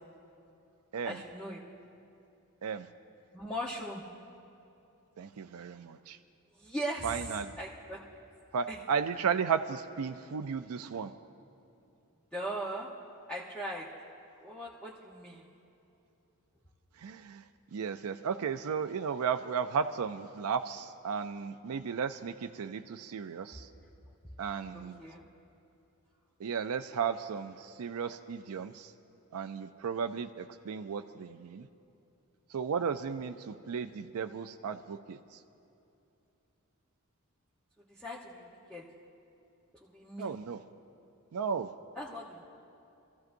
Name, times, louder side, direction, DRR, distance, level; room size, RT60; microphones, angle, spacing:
voice 1, 1.0-1.6 3.3-4.0 6.6-8.0 8.7-8.8 12.3-12.9 13.3-13.9 14.4-15.4 24.7-25.2 37.9-38.8 39.8-40.4 42.0-42.4, right 1 dB, 5° left, -7 dB, 0.9 m, -39 dB
voice 2, 5.2-6.2 7.0-7.6 8.5-11.1 17.0-17.5 17.7-23.7 24.4-25.0 26.4-28.9 29.3-31.7 32.5-35.4 40.2-40.6 41.3-41.7, right 6 dB, 80° right, 8 dB, 0.4 m, -34 dB
26.5 x 15.0 x 2.6 m, 2.8 s
head